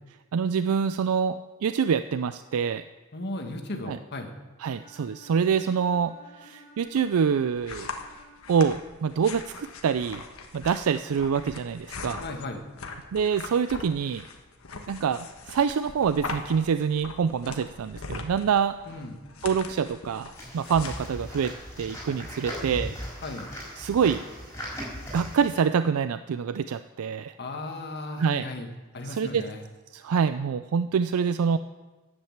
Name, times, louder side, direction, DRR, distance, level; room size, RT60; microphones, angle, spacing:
voice 1, 0.3-2.8 3.9-4.0 4.6-6.1 6.4-7.9 8.5-10.2 10.5-12.2 13.1-14.2 14.9-18.8 19.4-23.0 23.8-24.2 25.1-27.3 28.2-28.5 29.0-29.4 29.9-31.6, right 6 dB, 90° right, 11 dB, 0.4 m, -26 dB
voice 2, 3.1-4.3 12.2-12.6 18.9-19.2 23.2-23.5 27.4-28.7 28.9-29.6, left 2 dB, 50° left, 4 dB, 1.5 m, -35 dB
Bowed string instrument, 4.6-8.6, left 1 dB, 20° right, 4.9 m, -53 dB
sound 1, 6.9-22.2, left 4 dB, 75° left, 1.3 m, -41 dB
sound 2, 20.4-25.6, equal, 15° left, 4.8 m, -38 dB
10.5 x 8.7 x 7.3 m, 1.2 s
head